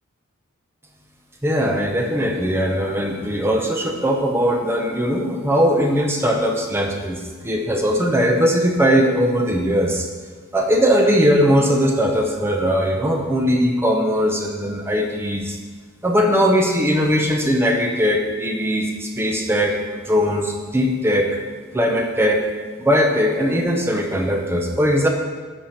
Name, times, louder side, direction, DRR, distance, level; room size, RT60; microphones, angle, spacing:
voice 1, 1.4-10.1 10.5-15.6 16.0-21.3 21.7-22.4 22.8-25.1, equal, 10° right, 2 dB, 0.7 m, -19 dB
8.6 x 5.0 x 5.7 m, 1.4 s
head